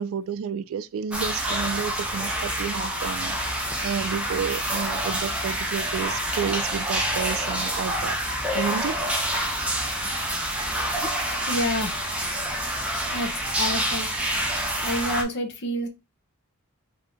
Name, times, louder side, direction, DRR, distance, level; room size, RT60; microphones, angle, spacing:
voice 1, 0.0-8.2 8.5-9.2, right 7 dB, 65° right, 0.3 m, -31 dB
sound 1, 1.1-15.2, right 1 dB, 5° right, 0.8 m, -27 dB
voice 2, 11.5-12.1 13.1-13.3 13.6-14.1 14.8-15.9, equal, 50° left, 0.9 m, -28 dB
3.9 x 2.7 x 3.4 m
head